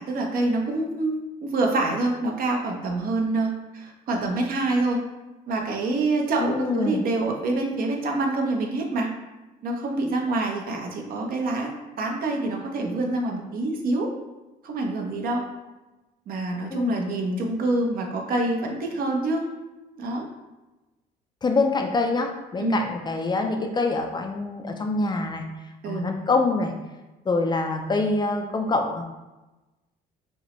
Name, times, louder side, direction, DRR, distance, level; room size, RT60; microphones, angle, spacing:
voice 1, 0.0-5.0 5.5-9.1 9.6-11.7 12.0-14.1 14.6-15.4 16.3-19.5 20.0-20.3 22.6-22.8 25.8-26.1, right 2 dB, 60° right, 1 dB, 0.7 m, -26 dB
voice 2, 6.4-7.0 16.7-17.0 21.4-25.4 25.9-26.7 27.3-29.0, left 3 dB, 25° left, 4 dB, 0.4 m, -25 dB
5.2 x 2.1 x 3.0 m, 1.1 s
cardioid pair, 110°, 17 cm